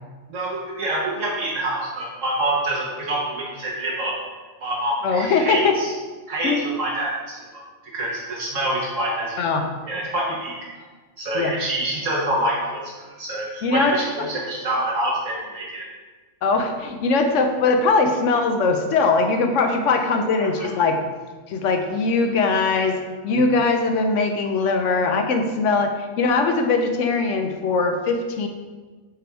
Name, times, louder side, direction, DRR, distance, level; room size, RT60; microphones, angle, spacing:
voice 1, 0.3-4.2 4.6-5.9 6.3-9.4 9.8-10.6 11.2-15.8 20.4-20.7, right 1 dB, 70° right, -4 dB, 1.3 m, -26 dB
voice 2, 5.0-5.8 6.4-6.6 9.4-9.7 11.3-11.5 13.6-14.0 16.4-21.0 21.5-28.5, left 3 dB, 70° left, 5 dB, 0.9 m, -21 dB
6.8 x 3.4 x 4.5 m, 1.3 s
omnidirectional pair, 1.4 m